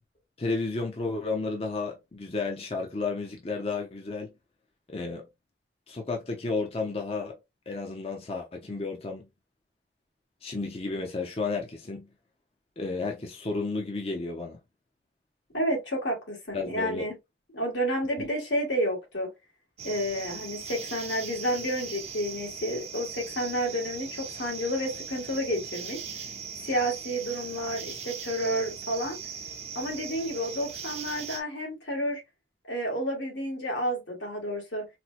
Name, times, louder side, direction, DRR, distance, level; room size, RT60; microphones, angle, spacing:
voice 1, 0.4-4.3 4.9-5.3 5.9-7.4 7.7-9.3 10.4-12.1 12.8-14.6 16.5-17.0 18.2-18.3, left 3 dB, 35° left, 0.6 m, -32 dB
voice 2, 15.5-17.2 17.5-19.3 19.8-26.0 26.6-29.2 29.8-32.2 32.7-34.9, equal, 90° left, 1.7 m, -30 dB
sound 1, 19.8-31.4, right 6 dB, 35° right, 0.5 m, -39 dB
4.2 x 2.1 x 2.4 m
head